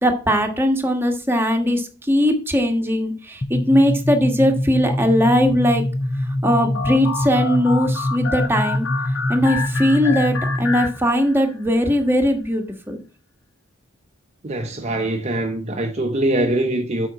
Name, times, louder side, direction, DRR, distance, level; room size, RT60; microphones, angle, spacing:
voice 1, 0.0-5.8 6.4-13.0, equal, 10° right, 1.4 m, -19 dB
sound 1, 3.4-11.0, left 1 dB, 20° left, 0.4 m, -24 dB
sound 2, 6.4-11.6, left 5 dB, 70° left, 1.2 m, -29 dB
voice 2, 14.4-17.1, right 1 dB, 35° right, 0.8 m, -23 dB
8.0 x 5.3 x 6.0 m
head